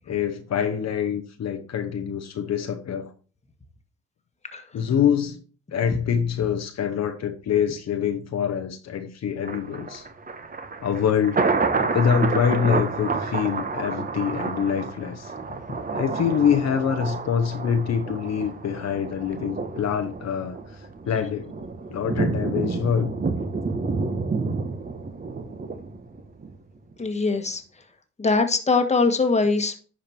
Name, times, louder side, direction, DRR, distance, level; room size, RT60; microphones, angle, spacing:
voice 1, 0.1-3.1 4.7-5.4 5.7-10.1 10.8-11.4 11.9-15.3 15.9-21.5 21.9-23.1, left 8 dB, 60° left, 1.1 m, -25 dB
Thunder, 9.4-26.5 26.9-27.0, right 4 dB, 30° right, 1.2 m, -29 dB
voice 2, 27.0-27.6 28.2-29.8, left 4 dB, 20° left, 1.5 m, -22 dB
10.5 x 5.0 x 4.5 m
cardioid pair, 90°, 30 cm